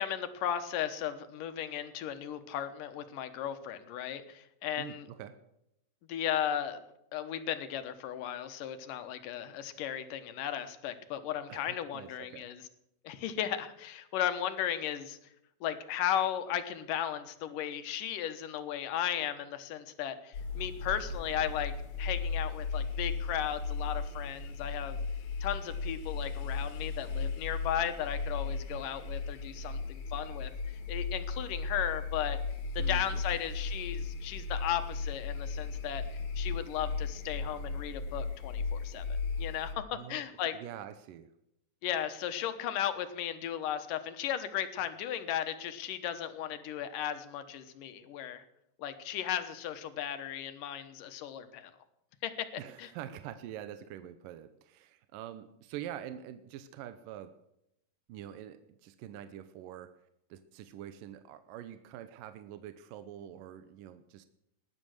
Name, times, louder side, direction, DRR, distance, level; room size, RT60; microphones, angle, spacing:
voice 1, 0.0-5.1 6.1-6.8 7.1-12.6 13.0-15.2 15.6-21.7 22.0-25.0 25.4-30.5 30.9-32.4 32.8-36.0 36.4-39.0 39.4-40.5 41.8-48.4 48.8-51.7 52.2-52.5 52.8-52.9, left 10 dB, 75° left, 10 dB, 2.7 m, -35 dB
voice 2, 4.8-5.4 11.5-12.5 32.8-33.2 39.9-40.2 40.5-41.3 52.6-57.3 58.1-59.9 60.3-64.3, right 11 dB, 80° right, 10 dB, 2.4 m, -45 dB
sound 1, 20.3-39.7, left 4 dB, 60° left, 2.9 m, -36 dB
19.0 x 11.0 x 6.5 m, 0.82 s
omnidirectional pair, 4.0 m